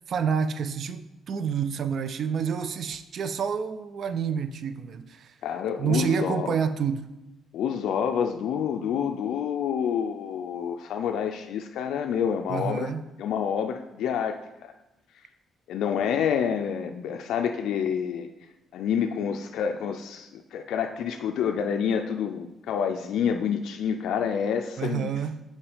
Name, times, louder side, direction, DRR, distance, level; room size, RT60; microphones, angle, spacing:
voice 1, 0.1-5.3 5.8-7.1 12.5-13.0 24.8-25.4, right 6 dB, 60° right, 11 dB, 0.3 m, -28 dB
voice 2, 5.4-6.5 7.5-12.9 13.2-14.7 15.7-18.3 18.7-25.1, left 7 dB, 80° left, 5 dB, 0.3 m, -28 dB
5.9 x 4.4 x 4.8 m, 0.98 s
cardioid pair, 90°, 0 cm